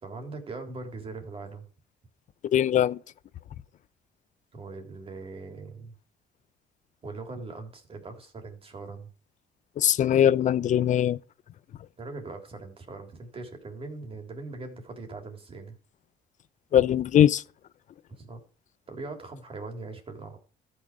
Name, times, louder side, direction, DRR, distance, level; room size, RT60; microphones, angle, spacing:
voice 1, 0.0-1.7 4.5-5.9 7.0-9.1 12.0-15.8 18.2-18.4 18.9-20.4, right 3 dB, 35° right, 3.7 m, -40 dB
voice 2, 2.5-3.0 9.8-11.2 16.7-17.4, left 10 dB, 45° left, 0.6 m, -21 dB
13.5 x 6.4 x 5.0 m
cardioid pair, 110°, 17 cm